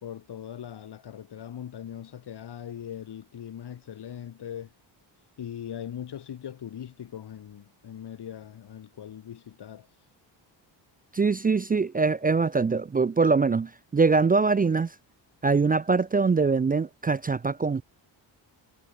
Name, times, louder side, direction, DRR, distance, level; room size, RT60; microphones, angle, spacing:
voice 1, 0.0-4.7 5.4-10.1, left 9 dB, 55° left, 3.0 m, -40 dB
voice 2, 11.1-14.9 15.4-17.8, right 4 dB, 20° right, 0.5 m, -23 dB
cardioid pair, 90°, 47 cm